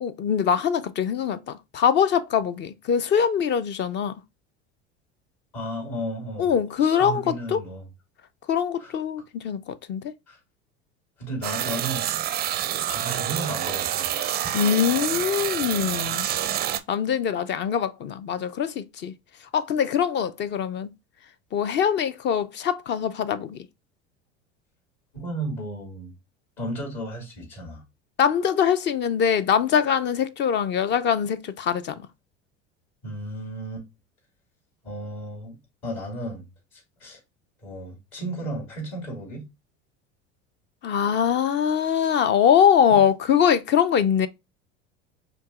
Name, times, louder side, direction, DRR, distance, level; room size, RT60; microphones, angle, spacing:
voice 1, 0.0-4.1 6.4-7.6 8.5-10.0 14.5-16.2 16.9-19.1 19.5-20.9 21.5-23.7 28.2-32.0 40.8-44.3, left 8 dB, 30° left, 0.4 m, -23 dB
voice 2, 5.5-7.9 8.8-9.0 10.3-10.4 11.2-12.0 12.9-14.5 25.1-26.1 26.6-27.8 33.0-33.8 34.8-37.2 37.6-39.5 42.9-43.0, right 1 dB, 50° left, 2.5 m, -34 dB
sound 1, 11.4-16.8, right 11 dB, 25° right, 0.4 m, -27 dB
4.6 x 2.9 x 2.3 m
hypercardioid pair, 80°, 36 cm